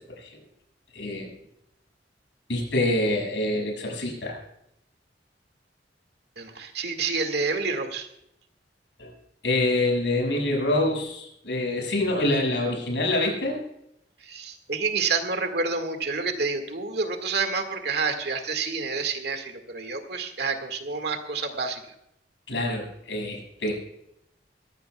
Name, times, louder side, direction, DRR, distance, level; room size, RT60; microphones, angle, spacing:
voice 1, 0.9-1.3 2.5-4.3 9.0-9.1 9.4-13.6 22.5-23.7, left 1 dB, 85° left, 0 dB, 6.4 m, -26 dB
voice 2, 6.4-8.1 14.2-21.8, right 4 dB, 65° right, 6 dB, 1.9 m, -28 dB
22.5 x 15.0 x 2.3 m, 0.78 s
head